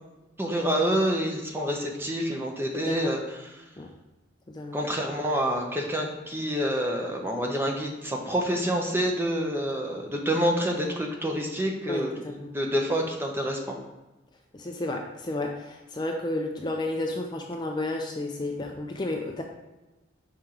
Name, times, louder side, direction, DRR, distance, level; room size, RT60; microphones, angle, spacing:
voice 1, 0.4-3.6 4.7-13.7, equal, 10° right, 1 dB, 0.7 m, -28 dB
voice 2, 4.5-4.8 11.9-12.5 14.5-19.4, left 2 dB, 25° left, 2 dB, 0.4 m, -32 dB
5.6 x 4.5 x 3.8 m, 1.1 s
head